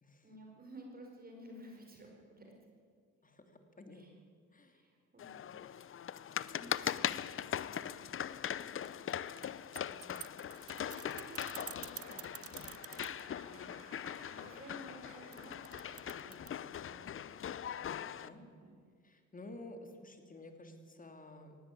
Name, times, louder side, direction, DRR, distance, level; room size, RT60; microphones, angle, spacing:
voice 1, 0.2-2.5 3.9-4.1 4.7-5.8 6.5-10.2 10.6-12.5 13.2-13.7 14.3-17.5 17.9-18.8, right 1 dB, 30° right, 1 dB, 4.9 m, -56 dB
voice 2, 3.2-4.0 4.5-4.8 18.2-18.5 19.0-21.6, left 2 dB, 25° left, 6 dB, 3.1 m, -52 dB
sound 1, 5.2-18.3, left 9 dB, 45° left, 0.6 m, -41 dB
sound 2, 8.8-13.2 15.3-16.5, right 11 dB, 50° right, 0.7 m, -48 dB
sound 3, 10.5-16.9, right 3 dB, 65° right, 6.3 m, -58 dB
19.0 x 16.0 x 8.7 m, 2.1 s
cardioid pair, 90°, 30 cm